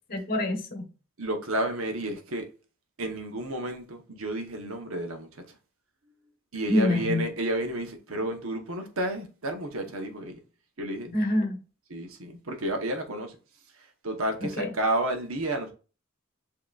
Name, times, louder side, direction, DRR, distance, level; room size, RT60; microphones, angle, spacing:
voice 1, 0.1-0.9 6.7-7.3 11.1-11.6 14.4-14.7, left 1 dB, 45° left, 1.0 m, -26 dB
voice 2, 1.2-2.4 3.0-5.4 6.5-10.3 10.8-11.1 11.9-13.4 14.0-15.7, right 1 dB, 75° right, 1.0 m, -31 dB
7.4 x 2.9 x 2.3 m
head